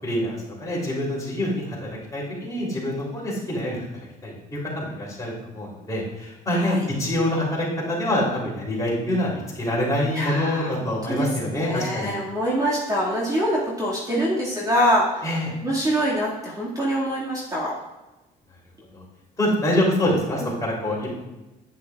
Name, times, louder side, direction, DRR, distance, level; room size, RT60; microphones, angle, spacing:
voice 1, 0.0-3.9 4.2-12.1 15.2-15.5 18.9-19.0 19.4-21.1, left 1 dB, 20° left, -5 dB, 3.3 m, -25 dB
voice 2, 6.5-6.9 10.1-11.3 11.6-15.3 15.6-17.7 20.4-20.5, equal, 20° right, -6 dB, 2.0 m, -25 dB
10.0 x 9.1 x 2.4 m, 1.0 s
cardioid pair, 110°, 17 cm